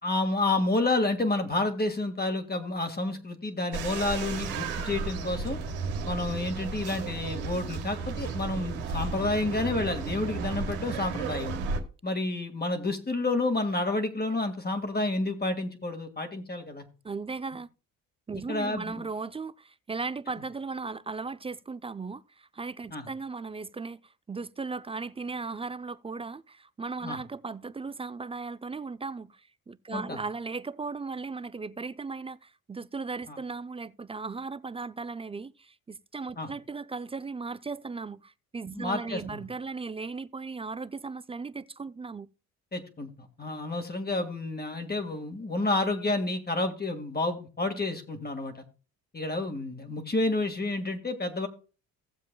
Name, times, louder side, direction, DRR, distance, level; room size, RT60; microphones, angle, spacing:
voice 1, 0.0-5.6 6.0-11.6 12.0-16.9 18.5-19.1 22.9-23.1 27.0-27.2 29.9-30.2 33.3-33.4 36.4-36.5 38.7-39.4 42.7-48.6 49.1-51.5, left 2 dB, 25° left, 1.9 m, -30 dB
sound 1, 3.7-11.8, right 4 dB, 85° right, 1.5 m, -34 dB
voice 2, 17.0-17.7 18.3-24.0 24.3-42.3, right 4 dB, 15° right, 0.4 m, -37 dB
17.0 x 7.4 x 2.3 m
hypercardioid pair, 55°, 41 cm